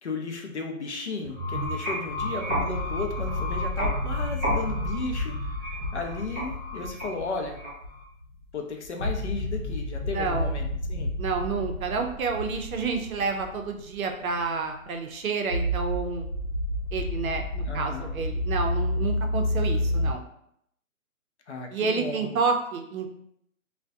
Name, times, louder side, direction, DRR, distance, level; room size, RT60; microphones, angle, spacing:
voice 1, 0.0-5.4 5.6-7.6 8.5-11.1 17.7-18.2 21.5-22.3, left 3 dB, 55° left, 2 dB, 0.5 m, -34 dB
sound 1, 1.2-8.0, equal, 15° right, 0.7 m, -33 dB
sound 2, 2.2-8.4 8.8-14.1 14.3-14.5 15.5-20.1, left 1 dB, 80° left, 0.9 m, -30 dB
voice 2, 10.1-10.6 11.2-16.3 16.9-20.2 21.7-23.1, right 4 dB, 75° right, 4 dB, 0.6 m, -29 dB
2.3 x 2.1 x 2.5 m, 0.73 s
hypercardioid pair, 160°, 42 cm